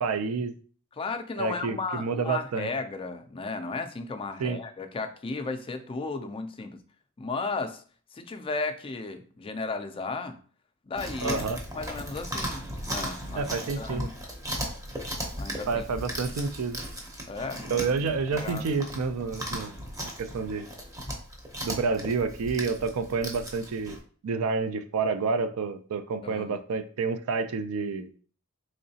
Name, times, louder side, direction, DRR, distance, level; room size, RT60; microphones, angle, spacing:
voice 1, 0.0-0.5 1.4-2.7 4.4-4.6 11.2-11.6 13.3-14.1 15.7-16.8 17.7-19.7 20.2-20.7 21.6-24.0 24.2-28.1, right 4 dB, 90° right, 10 dB, 0.4 m, -29 dB
voice 2, 1.0-6.8 7.2-7.8 8.1-10.4 10.9-11.4 11.8-14.1 15.4-15.8 16.2-16.3 17.3-17.8 18.4-18.9 26.2-26.6, left 3 dB, 25° left, 7 dB, 0.3 m, -35 dB
Chewing mastication, 10.9-24.0, equal, 15° right, 0.6 m, -37 dB
3.7 x 3.2 x 2.7 m, 0.43 s
head